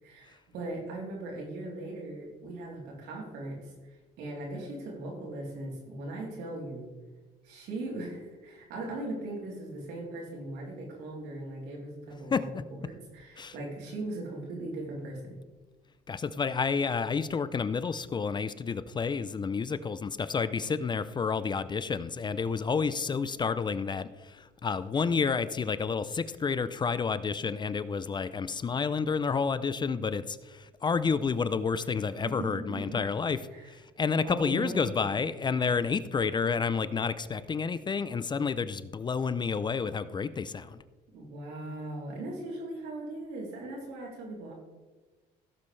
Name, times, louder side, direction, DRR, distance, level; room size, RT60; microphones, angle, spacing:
voice 1, 0.0-6.9 7.4-12.5 12.7-15.4 32.4-33.0 33.5-33.8 34.2-35.2 41.1-44.5, right 2 dB, 85° right, -2 dB, 3.5 m, -39 dB
voice 2, 16.1-33.4 33.7-40.8, left 5 dB, 25° left, 14 dB, 0.5 m, -30 dB
16.0 x 7.3 x 3.3 m, 1.2 s
cardioid pair, 110°, 17 cm